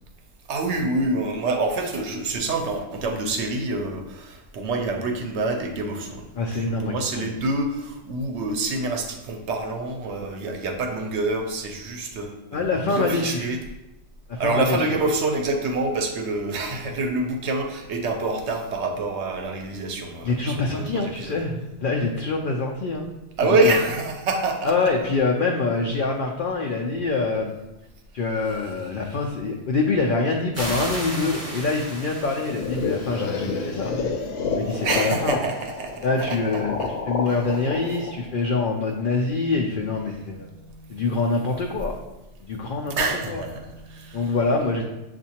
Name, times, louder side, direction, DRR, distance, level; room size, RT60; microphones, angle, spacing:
voice 1, 0.5-13.6 14.4-21.4 23.4-24.7 34.8-36.9 37.3-37.4 40.4-41.0 43.0-44.3, right 2 dB, 65° right, 4 dB, 0.9 m, -27 dB
voice 2, 6.4-7.3 12.5-13.5 14.3-15.0 20.2-23.1 23.4-23.8 24.6-27.5 28.1-33.9 34.6-35.4 36.0-36.8 37.1-40.5 40.9-41.9 42.4-43.4 44.1-44.8, left 3 dB, 65° left, 1 dB, 0.5 m, -25 dB
sound 1, 30.5-33.8, right 1 dB, 15° right, 0.6 m, -34 dB
sound 2, 32.4-39.3, left 4 dB, 85° left, 1.0 m, -30 dB
7.0 x 2.5 x 2.8 m, 0.96 s
omnidirectional pair, 1.3 m